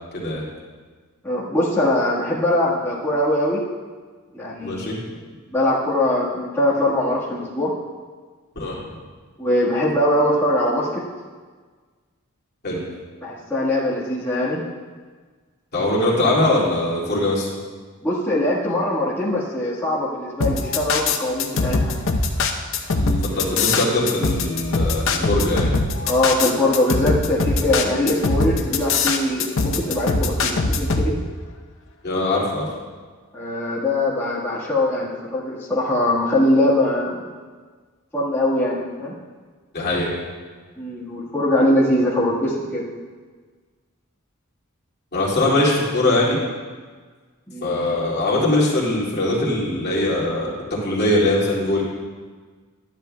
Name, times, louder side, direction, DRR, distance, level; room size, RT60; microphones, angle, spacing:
voice 1, 0.1-0.4 4.6-5.0 8.6-8.8 12.6-12.8 15.7-17.5 23.0-25.7 32.0-32.7 39.7-40.1 45.1-46.4 47.6-50.5 50.8-51.8, left 1 dB, 50° left, -6 dB, 2.4 m, -21 dB
voice 2, 1.2-3.6 4.3-5.1 5.5-7.7 9.4-11.0 13.2-14.6 18.0-22.0 26.0-31.1 33.3-37.2 38.1-39.1 40.8-42.8 47.5-47.7, left 1 dB, 10° left, -10 dB, 1.5 m, -22 dB
sound 1, 20.4-31.1, left 4 dB, 65° left, 0.8 m, -21 dB
12.0 x 10.0 x 2.3 m, 1.5 s
head